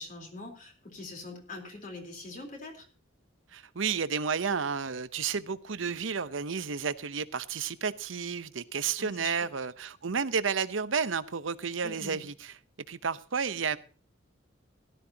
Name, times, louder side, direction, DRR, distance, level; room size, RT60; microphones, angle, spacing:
voice 1, 0.0-2.9 9.0-9.5 11.8-12.2, left 2 dB, 40° left, 3.9 m, -43 dB
voice 2, 3.5-12.6 12.9-13.8, right 6 dB, 85° right, 0.8 m, -31 dB
17.0 x 12.5 x 2.9 m
head